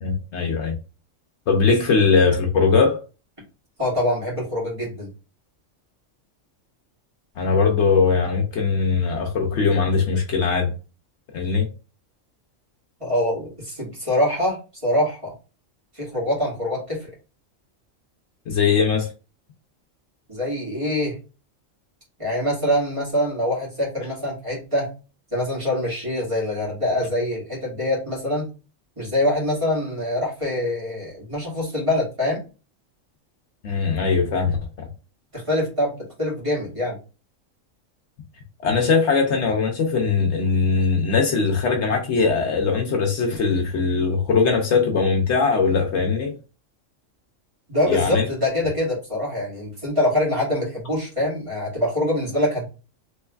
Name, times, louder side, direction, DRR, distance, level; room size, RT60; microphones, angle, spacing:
voice 1, 0.0-0.7 1.5-3.0 7.4-10.7 11.3-11.7 18.5-19.1 33.6-34.9 38.6-46.3 47.9-48.3, left 5 dB, 65° left, 0.9 m, -20 dB
voice 2, 3.8-5.1 13.0-15.3 15.9-17.1 20.3-21.2 22.2-24.9 25.3-28.5 29.0-32.4 35.3-37.0 47.7-52.7, left 1 dB, 25° right, 1.8 m, -24 dB
3.3 x 3.1 x 2.3 m
omnidirectional pair, 1.3 m